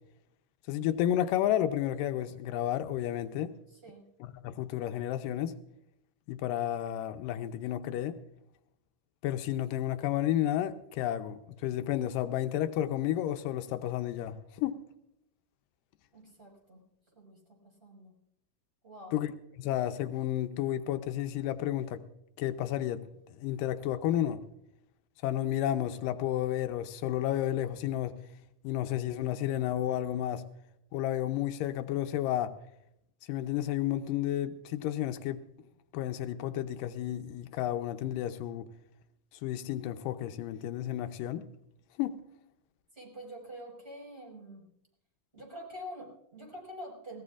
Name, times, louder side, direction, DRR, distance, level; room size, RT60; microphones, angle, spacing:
voice 1, 0.7-3.6 4.2-5.6 6.3-8.2 9.2-14.8 19.1-19.3 19.6-22.0 22.4-23.1 23.3-24.4 25.2-28.2 28.6-30.4 30.9-32.6 33.3-35.4 35.9-38.7 39.4-41.5 42.0-42.2, left 12 dB, 85° left, 2.3 m, -31 dB
voice 2, 16.1-16.8 17.1-18.1 18.8-19.2 42.9-44.7 45.3-47.2, equal, 15° right, 5.4 m, -46 dB
21.0 x 18.5 x 2.5 m
omnidirectional pair, 3.8 m